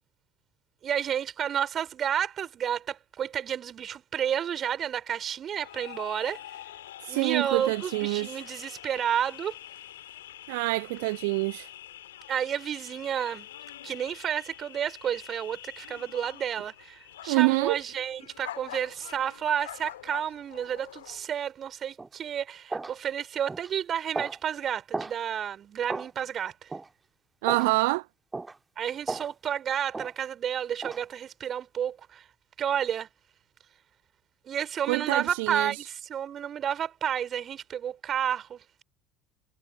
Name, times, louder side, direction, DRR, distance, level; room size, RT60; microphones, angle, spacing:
voice 1, 0.8-6.4 7.1-9.6 12.3-13.5 13.8-26.7 28.8-32.3 32.6-33.1 34.5-38.8, right 9 dB, 40° right, 5.4 m, -31 dB
sound 1, 5.6-21.2, left 13 dB, 70° left, 5.4 m, -46 dB
voice 2, 7.0-8.4 10.5-11.7 17.3-17.8 27.4-28.0 34.9-35.9, right 25 dB, 60° right, 0.4 m, -26 dB
sound 2, 22.0-22.1 22.7-22.9 23.5-23.7 24.1-24.4 24.9-25.2 25.9-26.1 26.7-26.9 27.5-27.7 28.3-28.5 29.1-29.3 29.9-30.1 30.8-31.0, right 3 dB, 15° right, 2.2 m, -34 dB
figure-of-eight pair, 60°, 0 cm